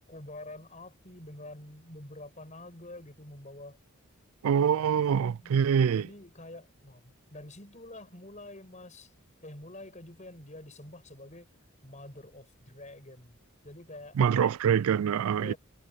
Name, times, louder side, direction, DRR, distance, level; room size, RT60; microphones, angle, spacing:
voice 1, 0.1-3.8 4.4-9.1 9.4-11.5 11.8-13.4 13.6-14.2 15.4-15.6, left 1 dB, 35° left, 7.0 m, -47 dB
voice 2, 4.4-6.1 14.2-15.5, right 8 dB, 80° right, 0.3 m, -25 dB
head